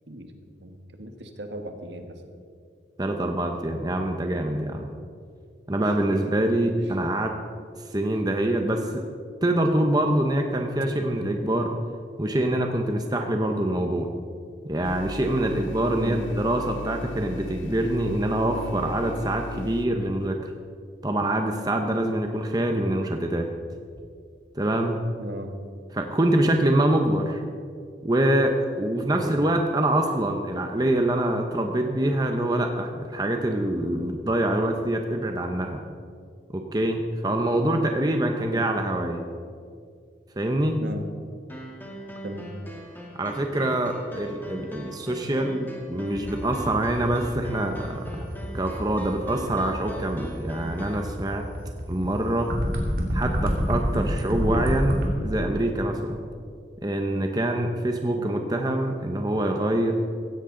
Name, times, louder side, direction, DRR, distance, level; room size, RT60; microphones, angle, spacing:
voice 1, 0.6-2.2 6.1-6.4 16.0-16.2 25.2-25.5 29.1-29.4 38.5-38.8 40.8-41.0 42.2-42.5 58.1-58.2, right 1 dB, 70° right, 5 dB, 1.5 m, -37 dB
voice 2, 3.0-4.9 5.7-7.3 7.9-8.9 9.4-11.7 12.2-14.1 14.7-20.4 21.0-23.5 24.6-25.0 25.9-27.4 28.0-28.5 28.8-35.8 36.5-39.2 40.4-40.8 43.2-48.3 48.5-51.4 51.9-52.5 53.1-56.2 56.8-59.9, right 1 dB, 20° right, 3 dB, 0.8 m, -25 dB
sound 1, 14.8-19.9, left 3 dB, 90° left, 0.8 m, -37 dB
sound 2, 41.5-51.1, right 1 dB, 10° left, 1.7 m, -41 dB
sound 3, 46.1-55.1, equal, 50° right, 2.6 m, -28 dB
16.0 x 16.0 x 3.9 m, 2.2 s
head